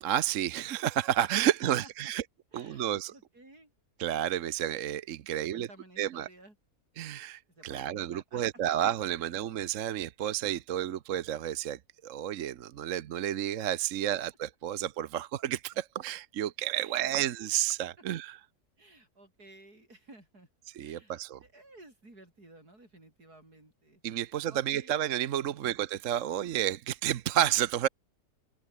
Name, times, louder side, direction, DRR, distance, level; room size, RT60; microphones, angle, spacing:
voice 1, 0.0-2.2 2.5-3.1 4.0-5.7 6.0-6.3 7.0-18.4 20.8-21.4 24.0-27.9, right 11 dB, 60° right, 1.1 m, -31 dB
voice 2, 1.4-2.1 2.5-3.7 5.3-6.6 7.5-8.8 9.2-9.3 16.8-17.5 18.8-20.5 20.8-24.9 25.5-25.8, right 2 dB, 80° right, 8.5 m, -55 dB
open air
omnidirectional pair, 1.6 m